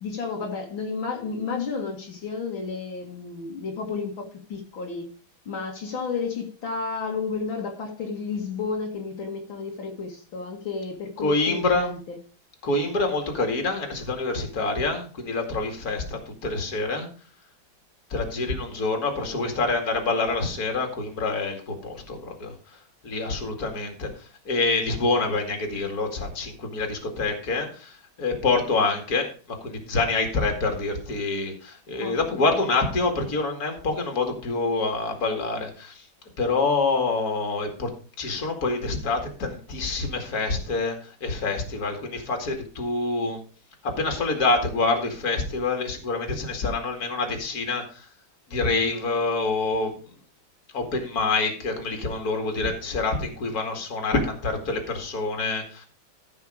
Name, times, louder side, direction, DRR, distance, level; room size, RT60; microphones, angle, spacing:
voice 1, 0.0-5.1 5.5-12.2 32.0-32.5, left 4 dB, 75° left, 2.5 m, -32 dB
voice 2, 11.2-11.9 12.6-17.1 18.1-22.5 23.0-36.0 36.4-37.9 38.2-43.4 43.8-48.1 48.5-50.0 50.7-55.9, left 3 dB, 45° left, 2.6 m, -26 dB
14.5 x 5.6 x 5.0 m
omnidirectional pair, 2.2 m